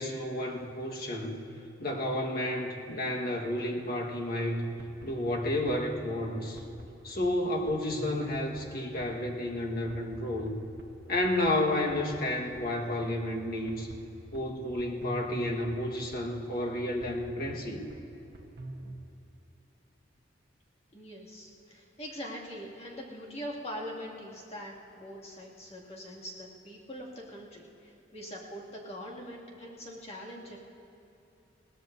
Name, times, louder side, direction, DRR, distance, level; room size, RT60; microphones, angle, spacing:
voice 1, 0.0-1.5 1.8-4.7 5.0-6.6 7.0-10.5 11.1-13.9 14.3-17.8, left 1 dB, 55° left, 0 dB, 1.5 m, -31 dB
sound 1, 4.8-19.0, right 1 dB, 60° right, 1.2 m, -49 dB
voice 2, 20.9-27.1 27.3-30.6, equal, 35° left, -4 dB, 2.4 m, -42 dB
21.5 x 17.5 x 2.7 m, 2.8 s
head